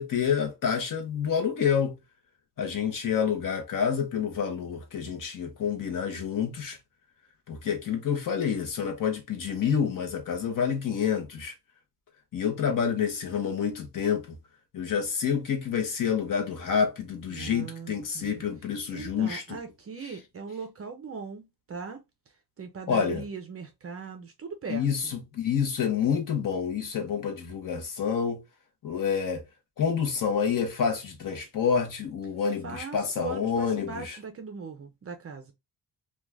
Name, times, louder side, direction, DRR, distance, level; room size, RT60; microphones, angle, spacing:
voice 1, 0.0-1.9 2.6-6.8 7.5-11.5 12.3-14.4 14.7-19.6 22.9-23.2 24.7-28.4 28.8-29.4 29.8-34.2, left 7 dB, 50° left, 0.8 m, -28 dB
voice 2, 17.3-18.4 18.9-21.4 21.7-22.0 22.6-25.2 32.6-35.5, right 5 dB, 35° right, 0.4 m, -39 dB
2.4 x 2.3 x 3.1 m
wide cardioid pair, 165°, 41 cm